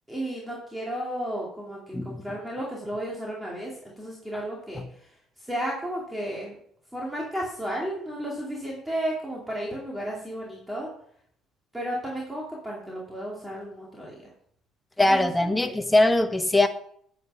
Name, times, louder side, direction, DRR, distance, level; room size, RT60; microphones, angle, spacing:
voice 1, 0.1-6.5 6.9-10.9 11.7-14.3 15.0-15.8, right 1 dB, 5° right, 2.5 m, -33 dB
voice 2, 15.0-16.7, left 2 dB, 10° left, 1.0 m, -21 dB
9.4 x 9.2 x 5.6 m
cardioid pair, 135°, 0 cm